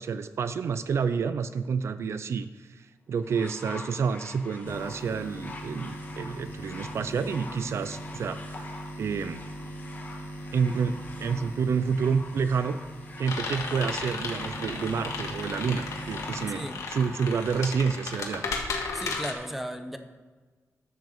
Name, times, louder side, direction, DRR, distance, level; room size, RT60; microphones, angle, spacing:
voice 1, 0.0-9.4 10.5-12.8 13.2-18.5, right 6 dB, 55° right, 12 dB, 0.4 m, -29 dB
sound 1, 3.2-17.8 18.7-18.8, left 2 dB, 30° left, 1.4 m, -45 dB
sound 2, 4.7-17.6, equal, 50° left, 1.8 m, -41 dB
sound 3, 13.2-19.3, left 4 dB, 70° left, 1.9 m, -34 dB
voice 2, 16.5-16.8 18.9-20.0, equal, 5° right, 7 dB, 0.8 m, -35 dB
12.0 x 6.1 x 7.2 m, 1.4 s
wide cardioid pair, 180°, 6 cm